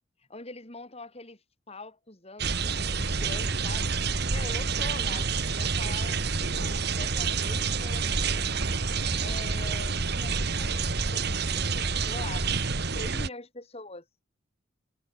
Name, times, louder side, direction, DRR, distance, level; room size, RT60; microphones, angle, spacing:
voice 1, 0.3-8.5 9.2-12.5 12.9-14.0, left 2 dB, 30° left, 4.7 m, -44 dB
sound 1, 2.4-13.3, right 4 dB, 55° right, 1.6 m, -28 dB
head